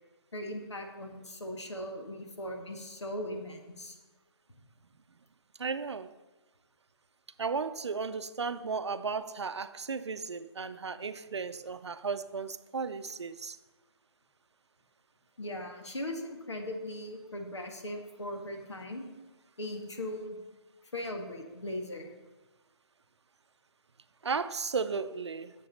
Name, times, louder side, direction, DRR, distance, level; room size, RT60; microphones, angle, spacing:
voice 1, 0.3-4.0 15.4-19.1 19.6-20.4 20.9-22.1, left 1 dB, 85° left, 1.7 m, -39 dB
voice 2, 5.6-6.1 7.4-13.6 24.2-25.5, right 5 dB, 80° right, 0.6 m, -35 dB
7.7 x 6.9 x 5.2 m
figure-of-eight pair, 150°, 14 cm